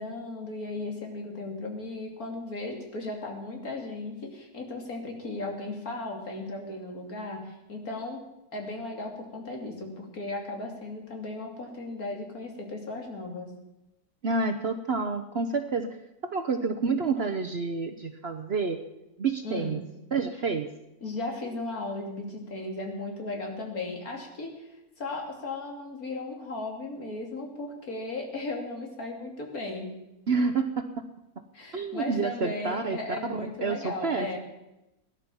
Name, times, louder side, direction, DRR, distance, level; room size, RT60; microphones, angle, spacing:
voice 1, 0.0-8.2 8.5-13.5 19.4-19.7 21.0-24.7 25.0-30.0 31.5-34.4, left 2 dB, 65° left, 1 dB, 3.3 m, -36 dB
voice 2, 14.2-16.0 16.2-18.8 19.2-19.8 20.1-20.7 30.3-31.1 31.7-33.0 33.3-34.4, right 4 dB, 45° right, 8 dB, 1.0 m, -29 dB
17.0 x 11.5 x 7.1 m, 0.93 s
omnidirectional pair, 1.7 m